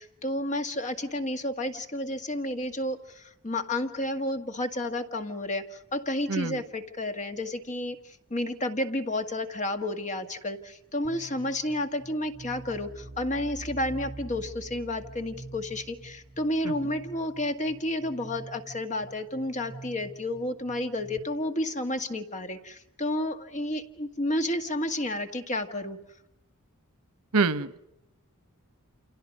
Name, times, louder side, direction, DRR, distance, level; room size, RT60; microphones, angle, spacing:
voice 1, 0.0-26.0, left 1 dB, 35° left, 7 dB, 1.8 m, -31 dB
voice 2, 6.3-6.6 16.6-16.7 27.3-27.9, right 4 dB, 90° right, 15 dB, 1.0 m, -26 dB
sound 1, 11.0-21.2, right 2 dB, 30° right, 3.3 m, -45 dB
29.0 x 28.0 x 5.4 m, 0.84 s
head